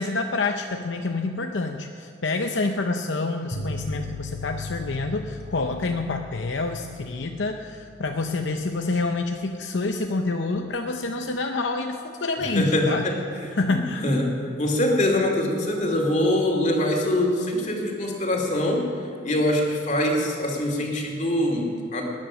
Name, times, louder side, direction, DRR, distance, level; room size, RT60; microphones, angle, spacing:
voice 1, 0.0-13.1 13.5-14.1, left 3 dB, 75° left, 4 dB, 0.7 m, -27 dB
sound 1, 3.5-8.6, left 2 dB, 90° left, 4.8 m, -37 dB
voice 2, 12.6-13.2 14.0-14.2 14.6-18.9 19.2-22.0, left 1 dB, 40° left, 1 dB, 2.5 m, -23 dB
20.0 x 10.0 x 6.2 m, 2.4 s
head